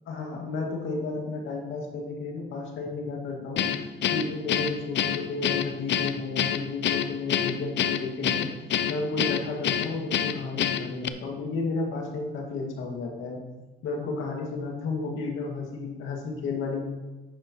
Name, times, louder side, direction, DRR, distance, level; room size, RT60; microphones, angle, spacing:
voice 1, 0.1-3.7 4.1-8.5 8.9-13.4 13.8-16.9, left 3 dB, 80° left, 0 dB, 2.0 m, -32 dB
Guitar, 3.6-11.1, left 9 dB, 65° left, 0.6 m, -27 dB
11.0 x 8.5 x 3.0 m, 1.1 s
cardioid pair, 90°, 20 cm